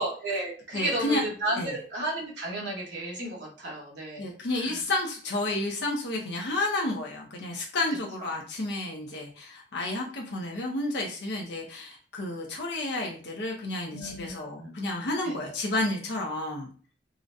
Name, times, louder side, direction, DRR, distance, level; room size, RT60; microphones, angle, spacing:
voice 1, 0.0-4.3 4.6-4.8 13.9-14.7 15.2-15.5, right 1 dB, 75° right, -2 dB, 1.0 m, -33 dB
voice 2, 0.7-1.2 1.6-1.7 4.2-16.7, left 2 dB, 70° left, -1 dB, 0.6 m, -31 dB
3.8 x 2.1 x 2.6 m, 0.41 s
head